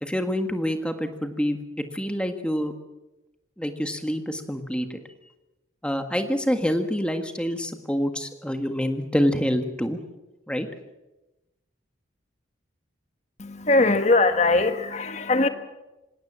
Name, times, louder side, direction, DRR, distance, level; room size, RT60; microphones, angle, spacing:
voice 1, 0.0-2.7 3.6-5.0 5.8-10.0 10.5-10.7, equal, 5° left, 7 dB, 1.6 m, -26 dB
voice 2, 13.4-15.5, left 2 dB, 35° left, 9 dB, 1.4 m, -21 dB
26.5 x 17.0 x 7.6 m, 1.0 s
head